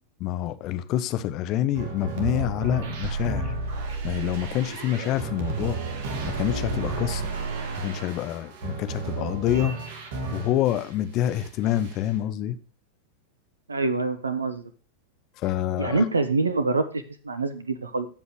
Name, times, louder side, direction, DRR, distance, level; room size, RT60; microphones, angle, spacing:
voice 1, 0.2-3.5 4.0-5.8 6.2-7.3 7.8-9.8 10.3-12.6 15.4-16.0, left 12 dB, 40° left, 0.9 m, -27 dB
sound 1, 1.8-10.9 11.2-12.0, right 3 dB, 55° right, 2.1 m, -32 dB
voice 2, 13.7-14.7 15.8-18.1, right 3 dB, 75° right, 0.9 m, -26 dB
15.5 x 5.4 x 3.1 m
figure-of-eight pair, 90°, 0 cm